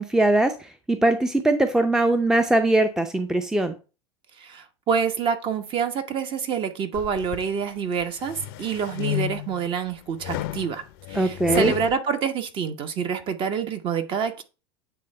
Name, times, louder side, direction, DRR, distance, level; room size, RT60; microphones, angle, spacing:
voice 1, 0.0-3.7 11.1-11.7, right 2 dB, 5° right, 0.6 m, -21 dB
voice 2, 4.4-10.8 11.1-14.4, right 6 dB, 35° right, 1.0 m, -27 dB
sound 1, 6.9-7.5 8.0-9.6 10.2-11.9, left 14 dB, 55° left, 0.6 m, -31 dB
8.4 x 3.4 x 4.3 m
figure-of-eight pair, 80°, 14 cm